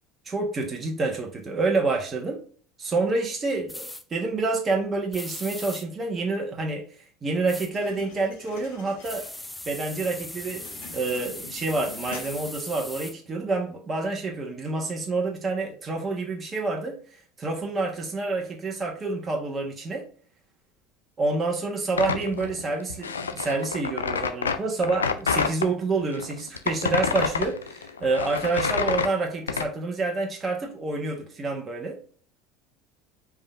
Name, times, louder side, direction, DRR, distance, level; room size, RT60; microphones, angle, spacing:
voice 1, 0.2-2.4 2.8-6.8 7.2-9.3 9.7-17.0 17.4-20.0 21.2-32.0, right 3 dB, 25° right, 1.3 m, -28 dB
sound 1, 3.7-4.0 5.1-5.8 7.5-7.7 9.0-13.1, left 1 dB, 10° left, 0.6 m, -39 dB
dinner wagon, 7.7-12.8, left 5 dB, 65° left, 1.1 m, -46 dB
sound 2, 21.9-25.7 26.1-29.7, left 6 dB, 80° left, 0.4 m, -28 dB
5.2 x 3.6 x 2.5 m
figure-of-eight pair, 70°, 0 cm